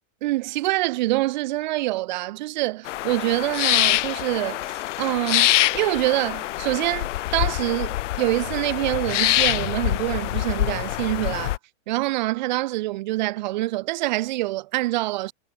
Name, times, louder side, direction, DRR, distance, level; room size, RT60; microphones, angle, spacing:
voice 1, 0.2-11.5 11.9-15.3, right 18 dB, 35° right, 0.8 m, -25 dB
sound 1, 2.9-11.6, left 15 dB, 70° left, 0.6 m, -25 dB
supercardioid pair, 165°, 38 cm